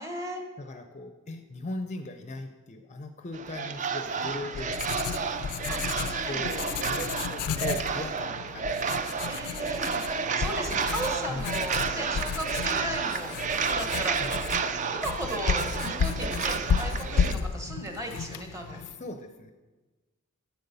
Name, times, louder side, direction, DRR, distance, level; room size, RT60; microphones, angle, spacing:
voice 1, 0.0-0.4 5.7-6.5 9.3-10.0 10.4-14.2 14.9-18.8, right 1 dB, 15° right, 3 dB, 1.2 m, -36 dB
voice 2, 0.6-4.7 5.0-5.2 6.0-9.5 11.3-11.7 14.1-14.4 18.7-19.5, left 2 dB, 30° left, 6 dB, 0.5 m, -39 dB
sound 1, 3.3-17.3, right 5 dB, 35° right, 0.4 m, -31 dB
Writing, 4.2-19.0, left 6 dB, 85° left, 0.4 m, -33 dB
8.3 x 7.9 x 5.4 m, 1.2 s
head